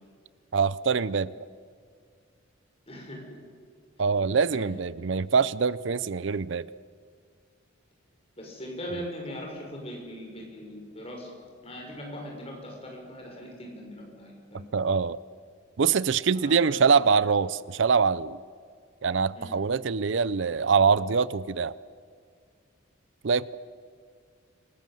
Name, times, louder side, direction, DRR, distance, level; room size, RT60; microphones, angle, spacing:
voice 1, 0.5-1.3 4.0-6.7 14.7-15.2 15.8-18.4 19.0-21.7 23.2-23.6, right 5 dB, 60° right, 18 dB, 0.5 m, -24 dB
voice 2, 2.9-3.4 4.4-4.7 8.4-11.3 11.6-14.6 16.3-16.8 19.3-19.6, equal, 30° left, 0 dB, 6.2 m, -40 dB
27.5 x 19.5 x 7.7 m, 2.1 s
head